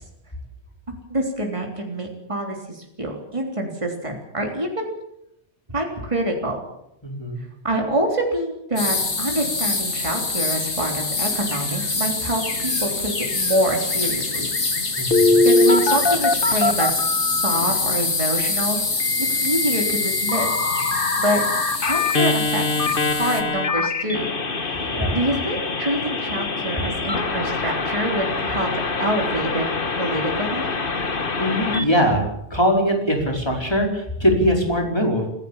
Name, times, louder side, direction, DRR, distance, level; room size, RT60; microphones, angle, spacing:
voice 1, 1.1-4.9 5.7-6.6 7.6-14.6 15.4-18.8 19.2-20.6 21.2-21.4 21.8-22.6 23.1-24.3 24.6-28.7 29.0-29.6 30.0-30.6, right 1 dB, 30° right, 1 dB, 3.7 m, -26 dB
voice 2, 7.0-7.4 15.0-15.4 24.9-25.2 31.4-32.3 32.5-35.3, equal, 25° left, 1 dB, 5.0 m, -21 dB
sound 1, 8.8-23.4, left 3 dB, 85° left, 2.7 m, -25 dB
Telephone, 15.1-17.6 19.0-31.8, left 3 dB, 50° left, 1.7 m, -23 dB
26.5 x 16.0 x 7.4 m, 0.81 s
omnidirectional pair, 1.1 m